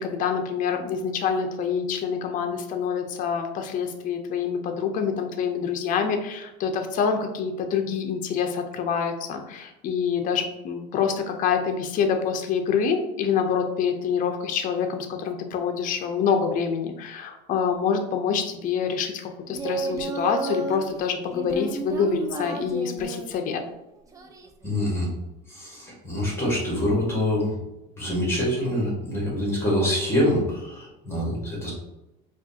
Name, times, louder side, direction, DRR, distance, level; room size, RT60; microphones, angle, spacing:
voice 1, 0.0-23.6, left 6 dB, 40° left, 5 dB, 0.5 m, -26 dB
Singing, 19.5-20.8 21.3-23.3 24.1-24.7, right 3 dB, 15° right, 0.4 m, -32 dB
voice 2, 24.6-25.1 25.5-27.5 28.0-31.7, left 1 dB, 10° left, -5 dB, 1.5 m, -25 dB
4.8 x 2.4 x 2.7 m, 0.96 s
supercardioid pair, 125°, 21 cm